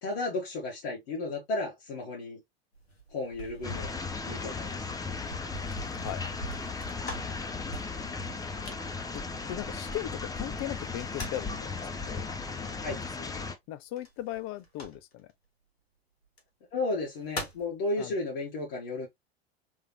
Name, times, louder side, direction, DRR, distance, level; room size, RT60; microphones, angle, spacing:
voice 1, 0.0-2.4 3.1-3.9 4.3-4.9 7.2-7.4 12.8-13.0 16.7-19.1, left 2 dB, 65° left, 1.9 m, -33 dB
sound 1, 2.7-10.1 10.8-11.6 14.0-15.3 16.2-16.4 16.9-17.7, right 1 dB, 90° left, 1.4 m, -44 dB
sound 2, 3.6-13.5, left 4 dB, 10° left, 0.7 m, -36 dB
voice 2, 5.9-6.3 9.1-12.3 12.6-15.3 18.0-18.1, left 13 dB, 45° left, 0.7 m, -39 dB
3.6 x 3.4 x 2.8 m
hypercardioid pair, 90°, 30 cm